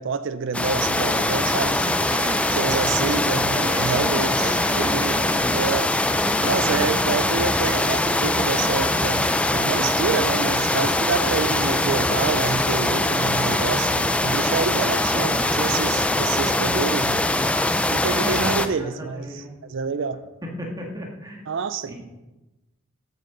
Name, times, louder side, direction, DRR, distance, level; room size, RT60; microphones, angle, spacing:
voice 1, 0.0-5.2 5.5-6.1 6.4-17.2 17.9-20.2 21.5-21.9, right 5 dB, 60° right, 13 dB, 0.5 m, -28 dB
sound 1, 0.5-18.7, left 1 dB, 5° left, 0.4 m, -22 dB
voice 2, 2.4-5.5 6.1-6.9 14.7-15.6 18.1-19.5 20.4-21.4 21.9-22.0, equal, 20° right, -1 dB, 2.0 m, -35 dB
13.5 x 8.8 x 3.9 m, 1.1 s
head